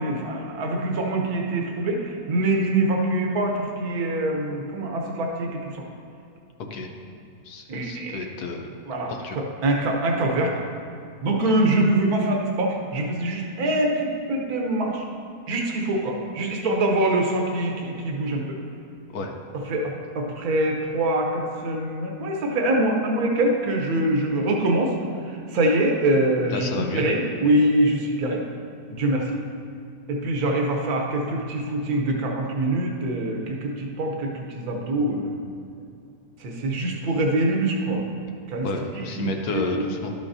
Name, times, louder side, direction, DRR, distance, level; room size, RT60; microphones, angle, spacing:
voice 1, 0.0-5.8 7.7-8.2 8.9-10.7 11.2-15.1 15.5-18.6 19.7-24.9 25.2-28.4 28.9-29.4 30.1-35.3 36.4-38.0 38.5-38.7 39.1-39.9, right 1 dB, 75° right, 1 dB, 1.4 m, -24 dB
voice 2, 7.4-8.7 9.1-9.4 11.4-11.5 19.1-19.3 26.5-27.0 38.6-40.1, left 3 dB, 80° left, 3 dB, 1.3 m, -31 dB
12.0 x 7.0 x 2.7 m, 2.6 s
omnidirectional pair, 1.6 m